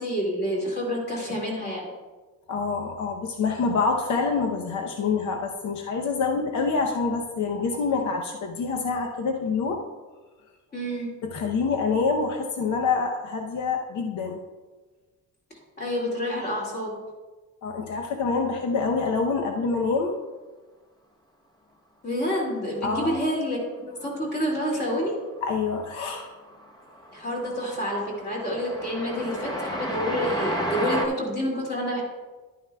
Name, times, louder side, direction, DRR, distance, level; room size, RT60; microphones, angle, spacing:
voice 1, 0.0-1.9 10.7-11.1 15.8-17.0 22.0-25.2 27.1-32.0, equal, 30° left, -2 dB, 2.2 m, -28 dB
voice 2, 2.5-9.8 11.2-14.4 17.6-20.2 22.8-23.2 25.4-26.3, left 4 dB, 65° left, 2 dB, 0.8 m, -26 dB
Train, 25.4-25.9 26.2-31.1, equal, 15° left, 0.7 m, -32 dB
11.5 x 9.3 x 2.3 m, 1.3 s
cardioid pair, 170°, 32 cm